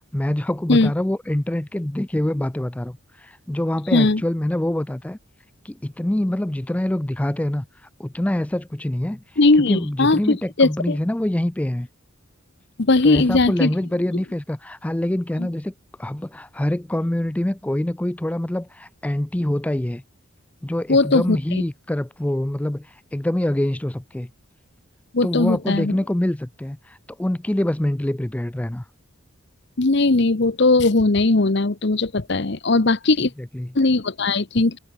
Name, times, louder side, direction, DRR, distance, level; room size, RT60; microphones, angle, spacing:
voice 1, 0.1-5.2 5.6-7.7 8.0-9.2 9.6-11.9 13.0-15.7 16.0-20.0 20.6-24.3 25.2-28.8 33.4-33.7, left 1 dB, 5° left, 0.3 m, -25 dB
voice 2, 3.9-4.2 9.4-11.0 12.8-13.7 20.9-21.4 25.1-26.0 29.8-33.3 33.7-34.8, left 3 dB, 55° left, 0.9 m, -18 dB
head